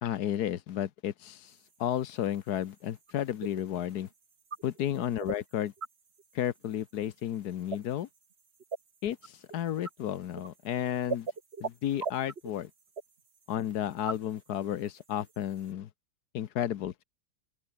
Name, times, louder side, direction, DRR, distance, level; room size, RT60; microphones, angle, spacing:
voice 1, 0.0-4.1 4.6-5.7 6.3-8.1 9.0-11.3 11.6-12.7 13.5-15.9 16.3-17.0, left 11 dB, 60° left, 1.2 m, -32 dB
sound 1, 1.5-15.7, right 5 dB, 35° right, 1.6 m, -43 dB
open air
omnidirectional pair, 2.2 m